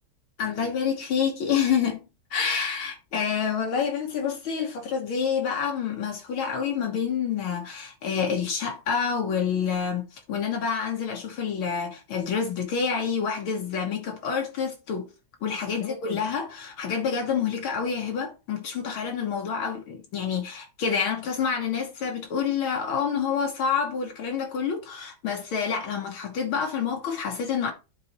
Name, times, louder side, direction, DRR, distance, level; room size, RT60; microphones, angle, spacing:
voice 1, 0.4-2.0 2.3-15.1 15.4-27.7, left 6 dB, 75° left, 1.9 m, -28 dB
11.0 x 4.0 x 2.9 m
omnidirectional pair, 2.3 m